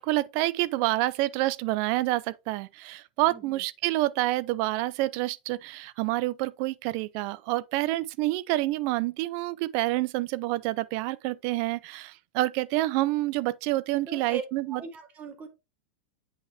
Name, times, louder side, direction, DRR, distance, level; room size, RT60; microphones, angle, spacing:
voice 1, 0.0-14.8, right 18 dB, 55° right, 0.5 m, -28 dB
voice 2, 3.3-3.6 14.1-14.4 14.8-15.5, right 5 dB, 30° right, 2.2 m, -39 dB
8.2 x 5.4 x 3.4 m
hypercardioid pair, 115°, 5 cm